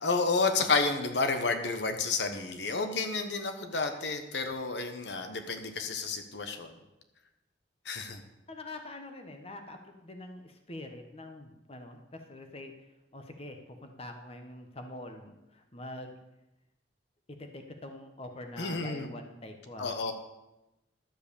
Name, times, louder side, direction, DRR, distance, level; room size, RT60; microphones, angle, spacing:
voice 1, 0.0-6.7 7.8-8.2 18.6-19.1 19.8-20.1, left 4 dB, 70° left, 7 dB, 1.1 m, -30 dB
voice 2, 8.5-12.9 13.1-16.2 17.4-19.9, left 1 dB, 35° left, 5 dB, 1.1 m, -45 dB
12.0 x 7.9 x 6.9 m, 0.96 s
head